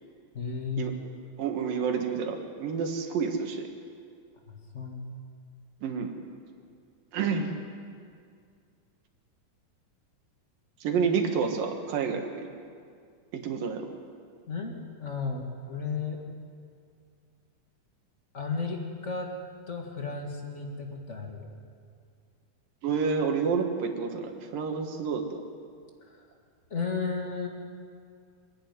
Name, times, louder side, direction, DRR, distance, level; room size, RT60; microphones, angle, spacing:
voice 1, 0.3-0.8 4.5-5.0 14.5-16.2 18.3-19.3 19.7-21.5 26.7-27.5, left 4 dB, 40° left, 1 dB, 1.1 m, -34 dB
voice 2, 1.4-3.7 5.8-6.1 7.1-7.5 10.8-12.3 13.3-13.9 22.8-25.4, right 6 dB, 70° right, 4 dB, 3.1 m, -29 dB
25.5 x 11.0 x 9.5 m, 2.2 s
omnidirectional pair, 4.3 m